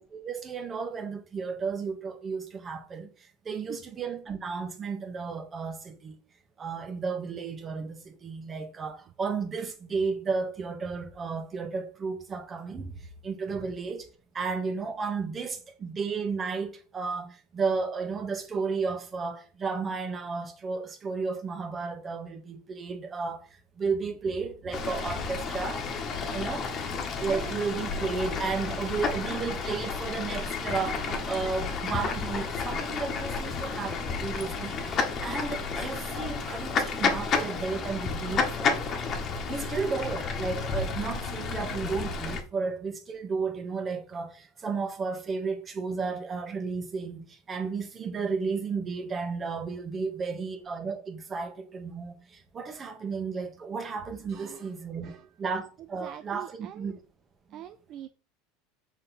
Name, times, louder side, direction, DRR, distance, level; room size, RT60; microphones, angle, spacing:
voice 1, 0.0-6.2 6.6-14.1 14.3-23.5 23.8-25.8 26.3-26.7 27.2-38.8 39.5-55.1 55.4-57.0 57.5-57.6, right 5 dB, 30° right, 1.5 m, -33 dB
Fowl / Bird, 24.7-42.4, left 5 dB, 40° left, 1.4 m, -31 dB
voice 2, 27.3-27.6 39.5-39.7 54.3-55.3 55.8-57.0 57.5-58.1, right 11 dB, 50° right, 0.5 m, -44 dB
6.3 x 4.2 x 4.3 m
hypercardioid pair, 80°, 0 cm